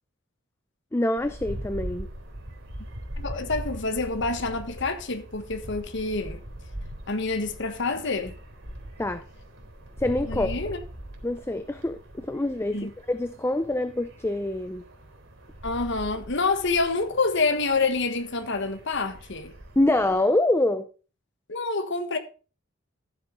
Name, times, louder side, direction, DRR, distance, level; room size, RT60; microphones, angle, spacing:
voice 1, 0.9-2.1 9.0-9.2 10.0-10.5 11.2-14.8 19.8-20.8, left 1 dB, 10° left, 0.5 m, -25 dB
sound 1, 1.2-20.2, equal, 65° right, 4.0 m, -41 dB
voice 2, 3.2-6.4 7.1-8.3 10.3-10.8 12.7-12.9 15.6-19.5 21.5-22.2, left 3 dB, 60° left, 1.3 m, -27 dB
14.0 x 7.3 x 3.9 m
head